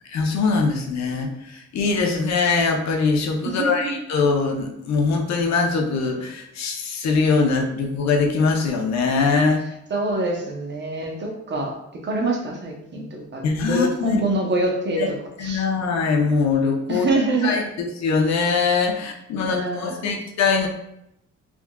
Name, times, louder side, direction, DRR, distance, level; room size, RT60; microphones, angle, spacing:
voice 1, 0.1-9.6 11.5-11.6 13.4-14.2 15.0-15.1 15.4-17.1 17.4-17.6 18.0-20.7, left 4 dB, 65° left, 2 dB, 0.6 m, -22 dB
voice 2, 3.4-4.0 9.9-15.6 16.9-17.6 19.4-20.1, right 2 dB, 35° right, 1 dB, 0.7 m, -25 dB
3.5 x 2.3 x 2.2 m, 0.81 s
cardioid pair, 90°, 30 cm